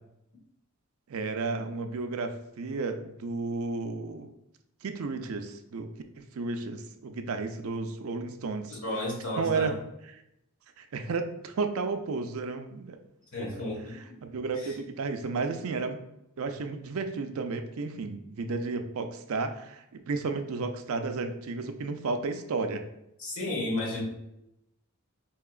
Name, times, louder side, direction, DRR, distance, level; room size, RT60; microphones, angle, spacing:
voice 1, 1.1-4.3 4.8-5.9 6.2-8.8 9.4-9.8 10.0-10.2 10.8-13.0 13.5-13.6 13.9-16.0 16.4-22.8, right 4 dB, 70° right, 7 dB, 0.4 m, -33 dB
voice 2, 8.7-9.7 13.3-14.0 23.2-24.0, left 1 dB, 70° left, -2 dB, 1.3 m, -32 dB
4.7 x 2.8 x 2.4 m, 0.83 s
head